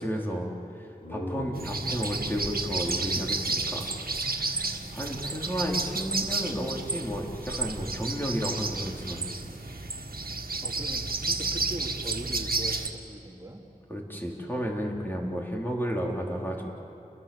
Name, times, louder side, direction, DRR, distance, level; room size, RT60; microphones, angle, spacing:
voice 1, 0.0-3.9 4.3-9.3 13.9-16.7, equal, 15° left, -2 dB, 4.4 m, -32 dB
sound 1, 0.7-4.4, left 1 dB, 85° left, 7.4 m, -42 dB
sound 2, 1.5-12.9, right 3 dB, 80° right, 1.8 m, -31 dB
voice 2, 10.6-13.6, right 1 dB, 25° right, -2 dB, 3.0 m, -40 dB
30.0 x 21.5 x 7.4 m, 2.9 s
wide cardioid pair, 50°, 15 cm